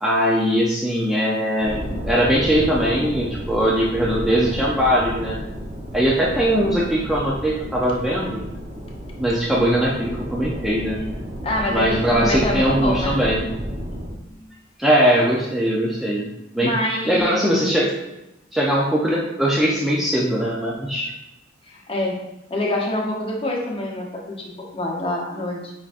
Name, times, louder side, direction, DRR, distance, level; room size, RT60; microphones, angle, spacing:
voice 1, 0.0-5.4 5.9-8.4 9.2-11.0 11.7-13.4 14.8-16.3 16.5-16.7 17.0-17.9 18.5-21.1, equal, ahead, -5 dB, 0.5 m, -20 dB
sound 1, 1.6-14.1, equal, 45° right, 0.9 m, -31 dB
voice 2, 11.4-13.2 14.3-14.4 16.6-17.5 21.7-22.2 22.5-25.7, left 1 dB, 30° left, -1 dB, 0.8 m, -26 dB
5.3 x 3.7 x 2.5 m, 0.91 s
head